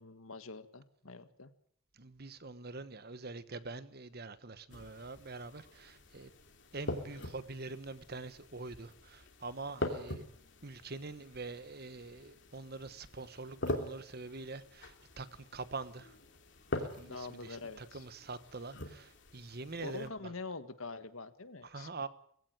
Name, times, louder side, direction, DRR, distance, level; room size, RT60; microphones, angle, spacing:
voice 1, 0.0-1.5 9.9-10.0 17.0-18.0 19.8-21.9, left 3 dB, 85° left, 1.6 m, -45 dB
voice 2, 2.0-6.3 6.7-10.3 10.6-16.2 16.8-20.3 21.6-22.1, right 3 dB, 50° right, 1.2 m, -45 dB
sound 1, 4.7-20.1, left 1 dB, 60° left, 2.8 m, -44 dB
20.0 x 16.0 x 9.1 m
head